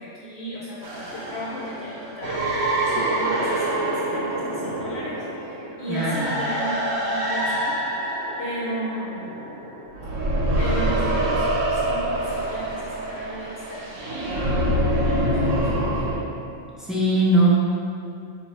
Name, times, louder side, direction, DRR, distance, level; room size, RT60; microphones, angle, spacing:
voice 1, 0.0-9.3 10.6-16.0, equal, 60° left, -5 dB, 0.8 m, -35 dB
sound 1, 0.8-14.8, equal, 60° right, 0.8 m, -38 dB
sound 2, 2.2-9.6 9.9-16.2, right 1 dB, 85° right, 1.1 m, -25 dB
voice 2, 5.9-6.3 16.8-17.6, right 2 dB, ahead, -8 dB, 0.5 m, -19 dB
4.1 x 2.6 x 4.5 m, 2.5 s
omnidirectional pair, 1.3 m